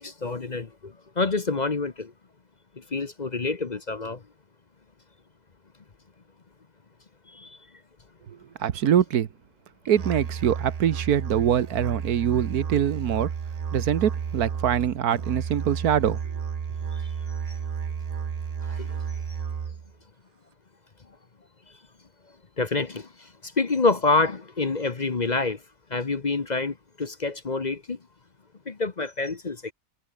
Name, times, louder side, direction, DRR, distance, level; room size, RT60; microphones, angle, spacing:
voice 1, 0.0-2.1 2.9-4.2 7.4-7.5 18.8-18.9 22.6-23.1 23.6-25.6 25.9-28.0 28.7-29.7, left 3 dB, 35° left, 1.0 m, -27 dB
voice 2, 8.6-9.3 9.8-13.3 13.7-16.2, right 9 dB, 90° right, 1.6 m, -23 dB
Musical instrument, 9.9-19.9, right 7 dB, 45° right, 0.5 m, -32 dB
omnidirectional pair, 1.6 m